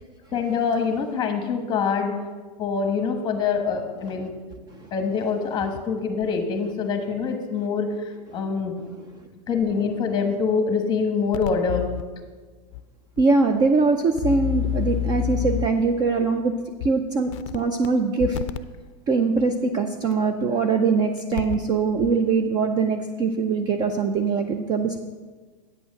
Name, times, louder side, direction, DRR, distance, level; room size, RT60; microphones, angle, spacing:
voice 1, 0.3-2.1 2.6-4.3 4.9-8.7 9.5-11.9, left 5 dB, 20° left, 5 dB, 1.2 m, -25 dB
sound 1, 11.3-12.0 12.7-12.8 13.2-13.3 14.2-15.9 16.8-16.9 17.3-17.9 18.2-18.6 20.1-20.2 21.2-21.7 22.0-22.1, left 13 dB, 50° left, 0.5 m, -28 dB
voice 2, 13.2-16.5 16.8-18.4 19.1-25.0, right 4 dB, 20° right, 6 dB, 0.4 m, -22 dB
8.8 x 6.1 x 6.5 m, 1.4 s
hypercardioid pair, 140°, 21 cm